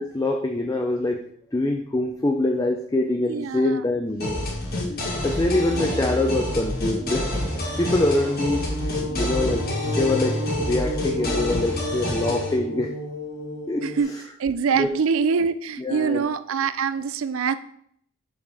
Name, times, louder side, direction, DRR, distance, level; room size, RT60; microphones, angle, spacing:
voice 1, 0.2-1.2 1.5-4.4 5.2-7.3 7.8-8.6 9.2-12.9 13.7-13.9 14.8-14.9 15.8-16.2, left 2 dB, 15° left, 2 dB, 0.4 m, -24 dB
voice 2, 3.3-3.8 5.7-6.2 13.8-14.1 14.4-17.6, right 5 dB, 65° right, 13 dB, 0.4 m, -24 dB
sound 1, 4.2-12.5, left 1 dB, 45° left, 1.4 m, -28 dB
sound 2, 6.1-14.0, left 1 dB, 65° left, 1.2 m, -32 dB
6.3 x 5.6 x 3.4 m, 0.67 s
head